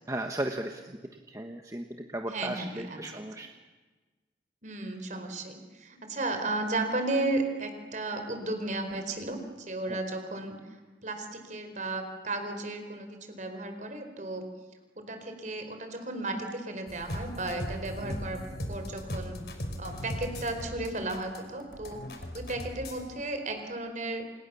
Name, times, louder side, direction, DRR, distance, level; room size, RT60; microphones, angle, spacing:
voice 1, 0.1-1.0 1.3-1.8 2.1-3.5 9.9-10.0, right 1 dB, 20° right, 4 dB, 1.4 m, -35 dB
voice 2, 2.3-3.2 4.6-9.4 9.7-10.6 11.0-14.5 15.0-18.4 18.7-19.4 19.8-24.2, right 2 dB, 45° right, 6 dB, 4.7 m, -34 dB
sound 1, 16.9-23.0, equal, 65° left, 4.9 m, -38 dB
28.5 x 28.5 x 7.1 m, 1.3 s
head